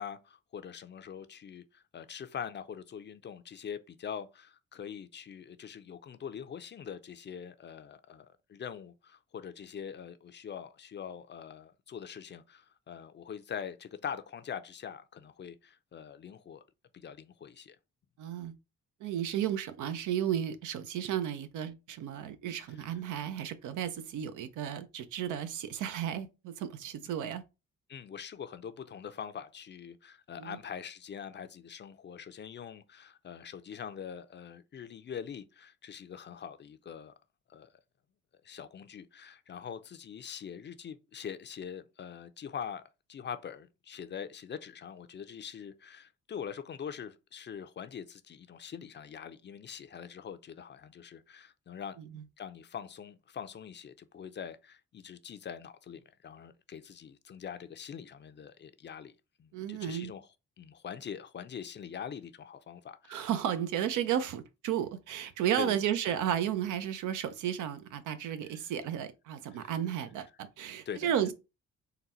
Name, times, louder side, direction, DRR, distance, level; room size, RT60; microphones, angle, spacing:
voice 1, 0.0-16.6 16.9-17.8 22.7-23.0 27.9-37.1 37.5-37.7 38.4-42.8 43.1-52.0 52.4-59.1 59.4-60.3 60.6-63.3 65.6-65.8 68.4-68.6 69.5-69.7 70.9-71.3, left 8 dB, 35° left, 0.5 m, -43 dB
voice 2, 18.2-18.5 19.0-27.4 30.4-30.6 52.1-52.2 59.5-60.1 63.1-71.3, right 10 dB, 80° right, 0.6 m, -33 dB
3.9 x 2.2 x 4.2 m
cardioid pair, 90°, 30 cm